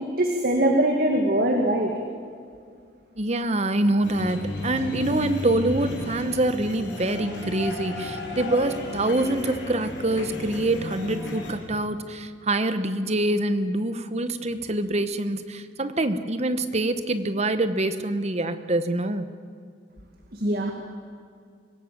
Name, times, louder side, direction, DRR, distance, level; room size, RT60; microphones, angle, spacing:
voice 1, 0.2-1.9 20.3-20.7, right 1 dB, 50° right, 2 dB, 2.0 m, -22 dB
voice 2, 3.2-19.3, right 1 dB, 35° right, 10 dB, 1.1 m, -25 dB
sound 1, 4.0-11.5, left 1 dB, 70° left, 4.7 m, -34 dB
25.0 x 17.0 x 7.5 m, 2.2 s
head